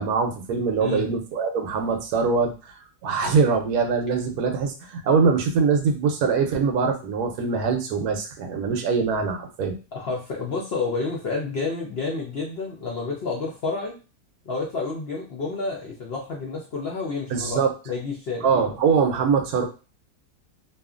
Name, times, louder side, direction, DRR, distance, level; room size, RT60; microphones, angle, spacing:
voice 1, 0.0-2.7 3.0-9.8 17.3-17.7 18.4-19.6, right 5 dB, 75° right, 4 dB, 1.0 m, -23 dB
voice 2, 0.8-1.1 9.9-14.0 14.4-18.7, left 4 dB, 65° left, -2 dB, 0.6 m, -30 dB
2.7 x 2.4 x 2.4 m, 0.33 s
omnidirectional pair, 1.7 m